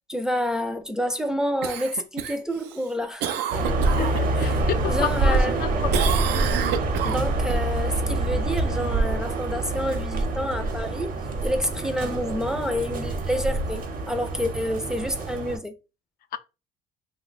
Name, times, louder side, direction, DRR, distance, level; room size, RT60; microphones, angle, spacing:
voice 1, 0.1-3.4 4.4-4.5 4.9-5.6 7.0-11.2 11.4-15.8, equal, 5° right, 0.4 m, -28 dB
Cough, 1.6-4.6 5.0-5.6 5.9-7.6 12.0-12.1, right 9 dB, 85° right, 0.5 m, -30 dB
sound 1, 3.5-15.6, right 2 dB, 55° right, 0.8 m, -26 dB
voice 2, 3.8-6.1 16.3-16.4, left 11 dB, 60° left, 0.4 m, -31 dB
2.9 x 2.2 x 3.9 m
cardioid pair, 110°, 17 cm